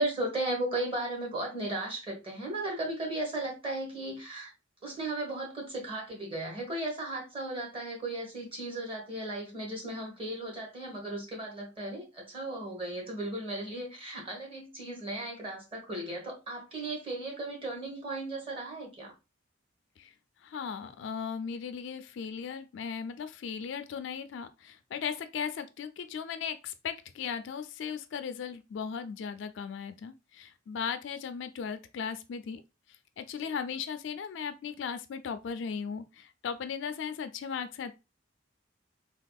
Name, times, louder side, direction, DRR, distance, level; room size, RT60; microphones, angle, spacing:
voice 1, 0.0-4.5 4.8-19.1 33.4-33.5, right 2 dB, 30° right, 1.1 m, -36 dB
voice 2, 20.4-32.6 33.2-37.9, left 6 dB, 65° left, 0.3 m, -37 dB
3.5 x 2.3 x 2.3 m
head